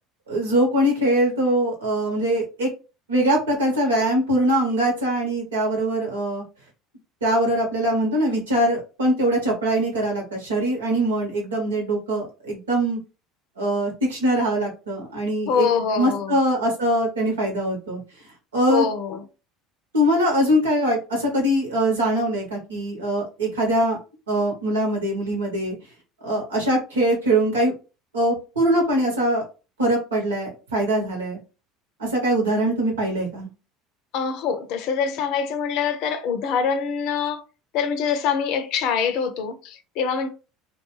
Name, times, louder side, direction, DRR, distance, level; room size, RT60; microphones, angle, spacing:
voice 1, 0.3-2.7 3.1-6.4 7.2-13.0 13.6-15.7 16.0-18.0 18.5-18.9 19.9-24.0 24.3-25.8 26.2-27.7 28.1-29.4 29.8-31.4 32.0-33.5, right 1 dB, 85° right, 1.0 m, -22 dB
voice 2, 15.5-16.4 18.7-19.2 34.1-37.4 37.7-40.3, left 6 dB, 60° left, 0.5 m, -24 dB
2.4 x 2.2 x 3.1 m
hypercardioid pair, 70°, 0 cm